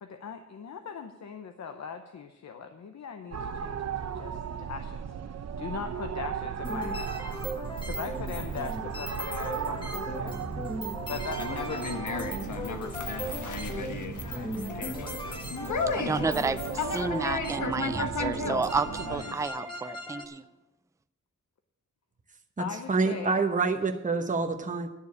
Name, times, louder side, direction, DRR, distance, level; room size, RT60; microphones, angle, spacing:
voice 1, 0.0-7.4 7.9-10.4 11.1-12.3 22.6-23.4, left 6 dB, 65° left, 7 dB, 0.8 m, -40 dB
sound 1, 3.3-19.2, right 7 dB, 60° right, 0.7 m, -36 dB
sound 2, 6.6-20.3, equal, 15° left, 1.6 m, -38 dB
Conversation, 11.1-19.5, left 5 dB, 80° left, 1.2 m, -35 dB
voice 2, 16.0-20.4, right 4 dB, 10° right, 12 dB, 0.4 m, -31 dB
voice 3, 22.9-24.9, right 4 dB, 25° right, 4 dB, 1.0 m, -26 dB
11.5 x 7.0 x 8.4 m, 1.0 s
wide cardioid pair, 150°, 30 cm